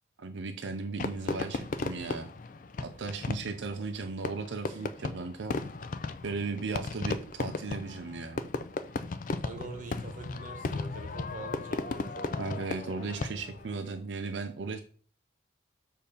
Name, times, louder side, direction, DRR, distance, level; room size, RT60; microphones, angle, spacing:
voice 1, 0.2-2.3 2.8-5.6 6.2-8.4 12.4-14.8, right 4 dB, 85° right, 6 dB, 0.5 m, -36 dB
Fireworks, 1.0-13.7, left 3 dB, 45° left, 0.4 m, -36 dB
voice 2, 9.4-12.6, right 2 dB, 45° right, 5 dB, 1.0 m, -44 dB
6.6 x 2.7 x 5.2 m, 0.43 s
head